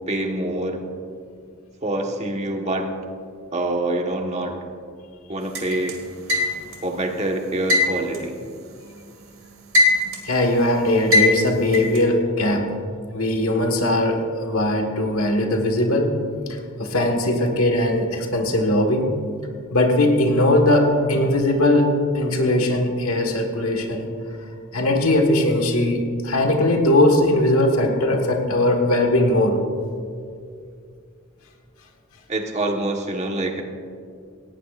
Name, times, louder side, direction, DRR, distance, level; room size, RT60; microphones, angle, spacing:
voice 1, 0.1-0.8 1.8-2.9 3.5-4.6 5.3-6.0 6.8-8.4 32.3-33.6, right 1 dB, 30° right, 2 dB, 1.4 m, -25 dB
sound 1, 5.5-6.9 7.7-9.1 9.4-10.4 11.1-12.0, left 2 dB, 75° right, 2.1 m, -20 dB
voice 2, 10.2-12.7 13.1-16.2 16.5-19.2 19.7-24.1 24.7-29.6, left 1 dB, 90° left, 3 dB, 1.6 m, -20 dB
18.0 x 17.0 x 2.5 m, 2.3 s
head